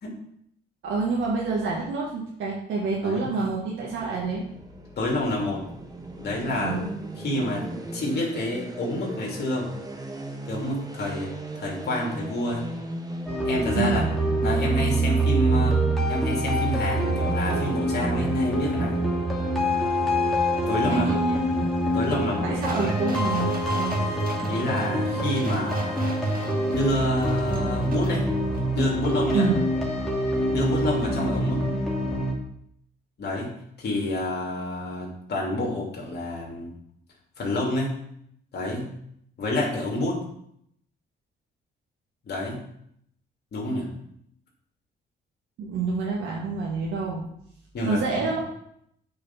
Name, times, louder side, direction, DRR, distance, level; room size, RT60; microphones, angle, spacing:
voice 1, 0.8-4.4 6.6-6.8 13.7-13.9 20.8-21.5 22.4-24.0 29.3-29.6 45.6-47.2 47.8-48.4, right 4 dB, 80° right, -4 dB, 2.0 m, -27 dB
sound 1, 3.8-17.7, right 1 dB, 20° right, 1.4 m, -39 dB
voice 2, 5.0-5.6 6.2-6.8 7.2-9.7 10.5-12.6 13.4-14.0 14.4-15.8 16.1-19.0 20.7-21.2 21.9-22.5 22.8-22.9 24.4-26.2 26.7-28.3 28.7-29.5 30.5-31.6 33.2-33.5 33.8-36.7 37.4-37.9 38.5-38.9 39.4-40.2 42.3-42.6 43.5-43.9 47.7-48.3, left 1 dB, 55° left, -2 dB, 2.9 m, -28 dB
sound 2, 13.3-32.3, right 1 dB, ahead, 2.6 m, -25 dB
sound 3, 22.6-28.2 28.5-28.6, right 3 dB, 45° right, 1.9 m, -40 dB
8.6 x 5.0 x 5.9 m, 0.72 s
cardioid pair, 90°, 20 cm